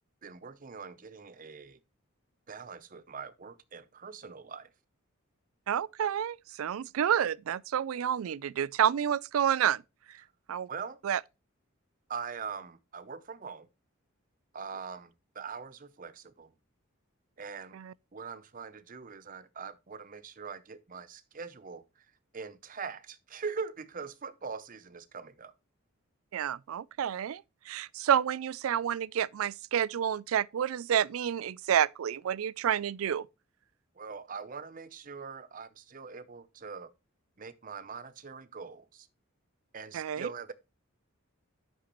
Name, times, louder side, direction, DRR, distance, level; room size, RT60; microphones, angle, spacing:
voice 1, 0.2-1.8 2.5-4.7 10.7-11.0 12.1-13.7 14.5-16.5 17.4-17.8 18.1-22.1 22.3-25.5 33.9-36.9 37.4-39.1 39.7-40.5, right 5 dB, 40° right, 0.7 m, -42 dB
voice 2, 5.7-9.8 10.5-10.7 11.0-11.2 17.7-17.9 26.3-33.3 39.9-40.3, right 9 dB, 80° right, 0.4 m, -29 dB
10.0 x 7.3 x 3.0 m
head